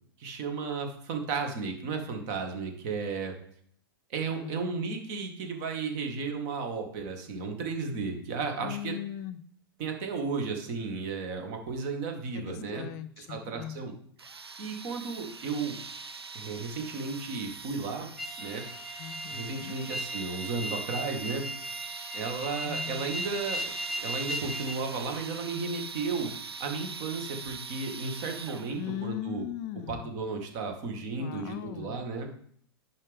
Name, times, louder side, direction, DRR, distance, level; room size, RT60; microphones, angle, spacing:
voice 1, 0.2-3.3 4.1-9.0 9.8-12.9 13.2-13.9 14.6-15.8 16.3-18.1 18.4-18.6 19.3-21.5 22.1-23.6 24.0-26.3 26.6-29.4 29.9-32.3, right 4 dB, 45° right, 4 dB, 2.0 m, -34 dB
voice 2, 4.3-4.7 8.6-9.4 12.3-13.8 19.0-19.8 22.6-23.2 28.8-30.1 31.0-32.0, left 12 dB, 45° left, 12 dB, 0.5 m, -39 dB
sound 1, 14.2-28.9, right 5 dB, 90° right, 0.5 m, -42 dB
sound 2, 18.2-24.8, right 1 dB, ahead, 1.2 m, -37 dB
10.5 x 4.8 x 3.7 m, 0.63 s
figure-of-eight pair, 100°, 13 cm